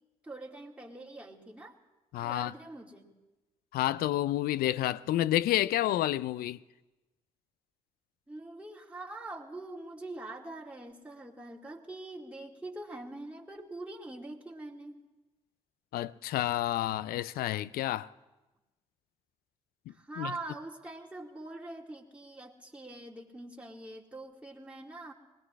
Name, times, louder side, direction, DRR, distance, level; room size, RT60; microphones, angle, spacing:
voice 1, 0.2-1.8 2.2-3.2 8.3-15.0 19.9-25.1, right 2 dB, 10° right, 2.5 m, -44 dB
voice 2, 2.1-2.5 3.7-6.6 15.9-18.1 20.2-20.3, left 14 dB, 70° left, 0.4 m, -29 dB
20.5 x 20.0 x 3.2 m
hypercardioid pair, 45°, 16 cm